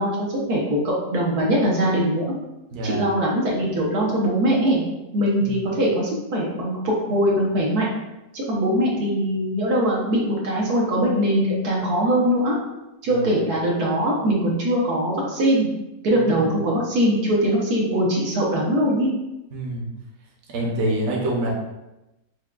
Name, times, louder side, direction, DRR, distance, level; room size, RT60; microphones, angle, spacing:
voice 1, 0.0-2.3 2.8-4.8 5.1-7.9 8.3-12.6 13.0-15.7 16.0-19.1, equal, 80° right, -3 dB, 1.4 m, -21 dB
voice 2, 2.7-3.0 5.4-5.6 13.1-13.3 19.5-19.8 20.5-21.5, right 1 dB, 55° right, -2 dB, 1.0 m, -26 dB
6.2 x 2.2 x 2.4 m, 0.96 s
omnidirectional pair, 1.6 m